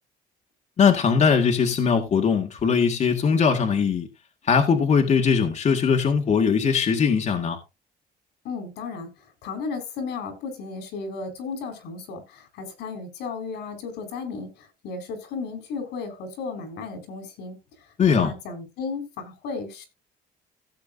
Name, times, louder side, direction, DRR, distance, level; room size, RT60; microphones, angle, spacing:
voice 1, 0.8-4.1 4.4-7.6 18.0-18.3, left 6 dB, 45° left, 2.0 m, -20 dB
voice 2, 8.4-9.1 9.4-17.6 18.1-19.8, left 4 dB, 85° left, 4.8 m, -34 dB
16.5 x 7.7 x 2.6 m
cardioid pair, 110°, 17 cm